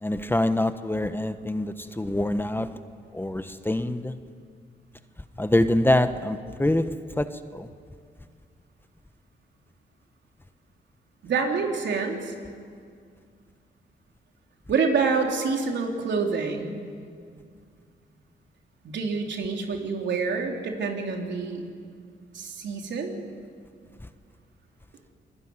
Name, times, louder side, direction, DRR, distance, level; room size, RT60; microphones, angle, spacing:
voice 1, 0.0-2.7 3.1-4.1 5.4-7.3 7.5-7.7, left 1 dB, 10° left, 10 dB, 1.2 m, -25 dB
voice 2, 11.2-12.3 14.7-16.7 18.8-21.6 22.3-23.1, right 4 dB, 70° right, 2 dB, 4.0 m, -27 dB
27.5 x 21.5 x 9.8 m, 2.2 s
cardioid pair, 80°, 19 cm